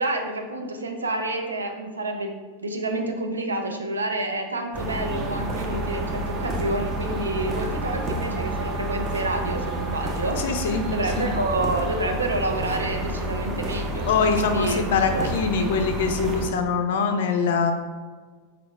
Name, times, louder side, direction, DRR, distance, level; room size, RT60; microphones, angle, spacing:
voice 1, 0.0-2.3 2.6-14.1 14.4-14.8 15.1-15.7, right 2 dB, 75° right, 4 dB, 0.5 m, -28 dB
sound 1, 4.7-16.5, right 1 dB, 25° right, 0.7 m, -29 dB
voice 2, 10.4-10.9 11.2-11.3 14.1-17.7, left 5 dB, 55° left, 6 dB, 0.4 m, -23 dB
3.5 x 3.4 x 3.4 m, 1.5 s
figure-of-eight pair, 90°, 0 cm